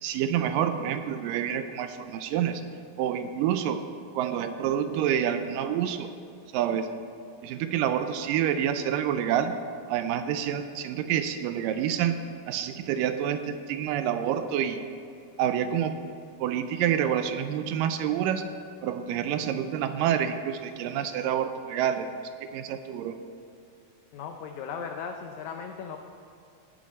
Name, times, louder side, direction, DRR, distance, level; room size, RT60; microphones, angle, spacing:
voice 1, 0.0-2.6 3.0-3.9 4.2-6.1 6.5-6.9 7.4-9.5 9.9-12.2 12.5-14.8 15.4-16.0 16.4-18.4 18.8-22.1 22.5-23.2, right 9 dB, 80° right, 9 dB, 2.1 m, -28 dB
voice 2, 24.1-26.0, left 6 dB, 90° left, 4 dB, 1.6 m, -37 dB
18.0 x 7.4 x 4.2 m, 2.6 s
omnidirectional pair, 4.1 m